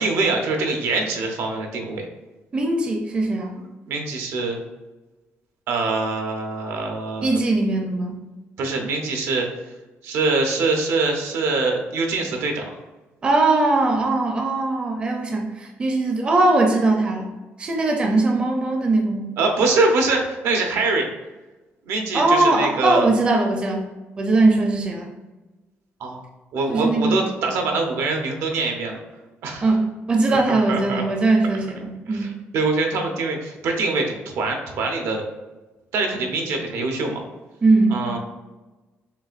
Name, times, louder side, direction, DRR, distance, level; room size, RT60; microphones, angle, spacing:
voice 1, 0.0-2.0 3.9-4.6 5.7-7.4 8.6-9.5 10.0-12.8 19.4-21.1 21.8-23.1 26.0-26.2 26.5-29.0 29.4-29.7 30.3-31.0 32.1-35.2 35.9-37.2 37.9-38.2, right 3 dB, 80° right, 2 dB, 0.8 m, -24 dB
voice 2, 2.5-3.6 7.2-8.2 13.2-17.3 17.6-19.3 22.1-23.9 24.2-25.1 26.7-27.2 29.6-32.3 37.6-38.0, right 2 dB, 20° right, 1 dB, 0.5 m, -20 dB
6.8 x 2.5 x 2.5 m, 1.1 s
cardioid pair, 165°, 5 cm